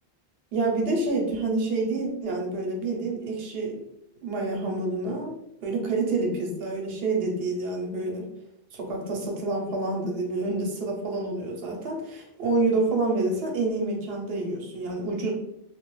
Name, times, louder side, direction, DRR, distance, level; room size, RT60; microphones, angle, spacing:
voice 1, 0.5-3.8 4.2-5.3 5.6-8.3 8.7-15.3, right 3 dB, 75° right, 0 dB, 0.9 m, -28 dB
2.3 x 2.1 x 3.0 m, 0.82 s
omnidirectional pair, 1.0 m